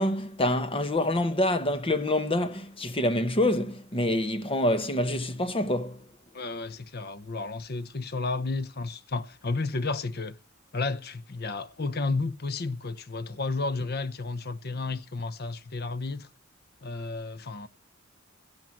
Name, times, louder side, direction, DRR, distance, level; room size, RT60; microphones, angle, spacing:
voice 1, 0.0-6.0, left 1 dB, 25° left, 1.1 m, -26 dB
voice 2, 6.3-10.4 10.7-16.3 16.8-17.7, left 3 dB, 50° left, 0.8 m, -32 dB
17.0 x 5.8 x 7.7 m
head